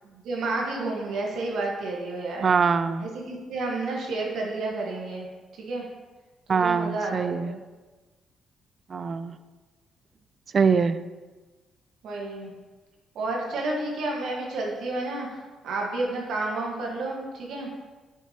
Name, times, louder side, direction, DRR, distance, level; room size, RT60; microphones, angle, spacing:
voice 1, 0.2-2.5 3.0-5.3 5.6-5.9 6.6-7.6 12.0-12.5 13.1-17.7, right 2 dB, 75° right, -1 dB, 1.3 m, -30 dB
voice 2, 2.4-3.1 6.5-7.6 8.9-9.4 10.5-11.0, right 5 dB, 45° right, 13 dB, 0.3 m, -23 dB
6.8 x 6.1 x 2.9 m, 1.2 s
cardioid pair, 90°, 0 cm